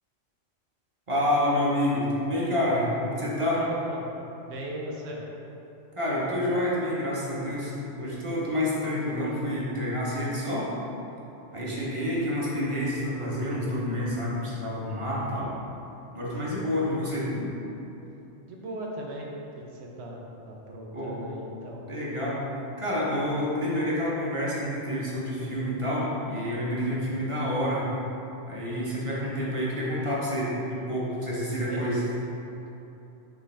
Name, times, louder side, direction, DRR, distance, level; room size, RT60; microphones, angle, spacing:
voice 1, 1.1-3.6 6.0-10.7 11.5-15.5 16.1-17.5 20.9-21.2 21.9-27.9 28.5-32.0, left 1 dB, 30° right, -6 dB, 0.7 m, -28 dB
voice 2, 3.6-4.1 4.4-5.2 11.5-11.9 16.4-16.6 18.4-21.8 26.9-27.1 31.3-31.9 32.6-32.7, right 1 dB, 65° right, -1 dB, 0.9 m, -39 dB
5.8 x 2.5 x 3.3 m, 3.0 s
omnidirectional pair, 1.3 m